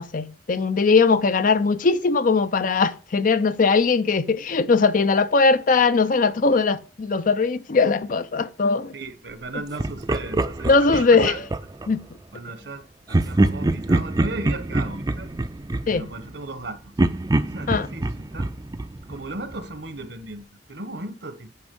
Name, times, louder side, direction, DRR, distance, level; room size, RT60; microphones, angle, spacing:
voice 1, 0.0-8.9 10.7-11.5 11.9-12.0 15.9-16.1 17.7-17.9, left 4 dB, 50° left, 0.5 m, -20 dB
voice 2, 8.9-11.4 12.3-15.3 15.9-16.9 17.5-18.1 18.3-18.5 19.1-21.5, right 2 dB, 65° right, 1.1 m, -36 dB
Laughter, 9.8-11.9 13.1-16.6 17.0-19.7, right 2 dB, 20° right, 0.5 m, -25 dB
9.6 x 5.1 x 5.3 m
head